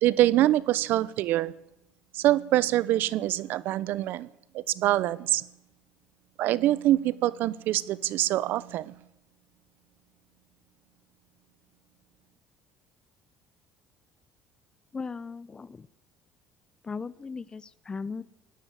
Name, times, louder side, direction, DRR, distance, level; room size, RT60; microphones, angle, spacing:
voice 1, 0.0-1.5 2.1-4.3 4.5-5.5 6.4-9.0, right 14 dB, 70° right, 0.8 m, -25 dB
voice 2, 14.9-15.9 16.8-18.2, left 4 dB, 25° left, 0.7 m, -37 dB
18.0 x 17.0 x 9.0 m
cardioid pair, 115°, 4 cm